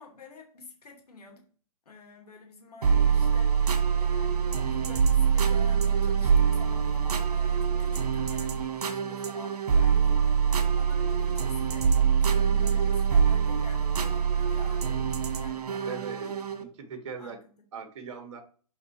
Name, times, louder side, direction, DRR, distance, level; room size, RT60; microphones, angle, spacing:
voice 1, 0.0-1.4 1.9-16.0 16.3-16.7 17.2-17.5, left 3 dB, 80° left, 3 dB, 2.5 m, -50 dB
sound 1, 2.8-16.6, right 7 dB, 80° right, 1.2 m, -25 dB
voice 2, 15.9-16.3 16.6-17.4 17.7-18.4, right 6 dB, 50° right, 7 dB, 1.3 m, -40 dB
5.5 x 4.4 x 4.2 m, 0.42 s
hypercardioid pair, 160°, 20 cm